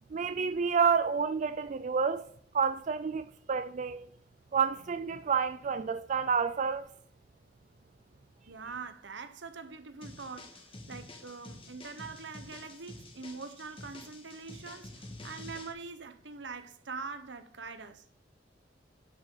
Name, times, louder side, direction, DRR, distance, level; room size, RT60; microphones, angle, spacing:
voice 1, 0.1-2.2 2.5-4.1 4.5-6.9, right 6 dB, 40° right, 0.4 m, -29 dB
voice 2, 8.5-18.1, right 4 dB, 75° right, 1.0 m, -44 dB
sound 1, 10.0-15.7, left 2 dB, 30° left, 1.6 m, -48 dB
11.0 x 6.1 x 3.9 m
head